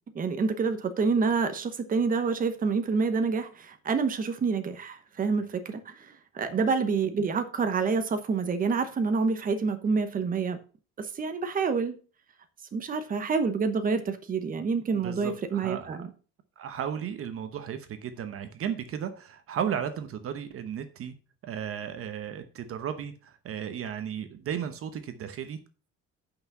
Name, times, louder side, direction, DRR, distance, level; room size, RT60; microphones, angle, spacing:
voice 1, 0.1-10.6 11.0-12.0 12.7-16.1, right 5 dB, 30° right, 1.0 m, -27 dB
voice 2, 14.9-15.9 16.6-21.1 21.4-25.6, right 8 dB, 50° right, 1.0 m, -35 dB
8.7 x 5.9 x 5.5 m
cardioid pair, 150°, 30 cm